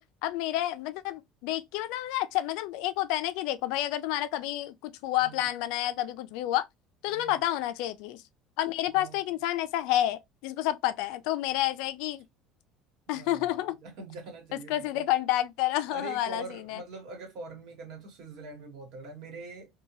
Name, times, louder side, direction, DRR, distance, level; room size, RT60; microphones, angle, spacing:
voice 1, 0.0-6.7 7.0-8.2 8.6-12.2 13.1-13.8 14.5-16.8, left 14 dB, 75° left, 0.3 m, -29 dB
voice 2, 7.1-7.4 8.9-9.2 13.1-15.0 15.9-19.8, right 3 dB, 60° right, 1.2 m, -44 dB
2.7 x 2.2 x 2.9 m
cardioid pair, 160°, 0 cm